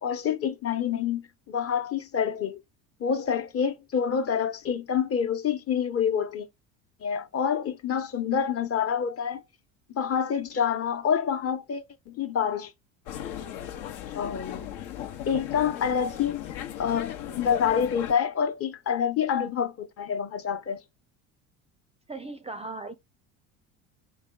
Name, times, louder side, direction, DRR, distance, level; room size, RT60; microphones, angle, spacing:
voice 1, 0.0-2.6 3.0-6.5 7.0-9.4 9.9-12.7 14.1-14.6 15.3-20.8, left 7 dB, 40° left, 1.1 m, -27 dB
sound 1, 13.1-18.1, left 10 dB, 75° left, 1.0 m, -37 dB
voice 2, 22.1-22.9, right 3 dB, 15° right, 0.5 m, -37 dB
3.5 x 2.3 x 3.8 m
supercardioid pair, 85°, 37 cm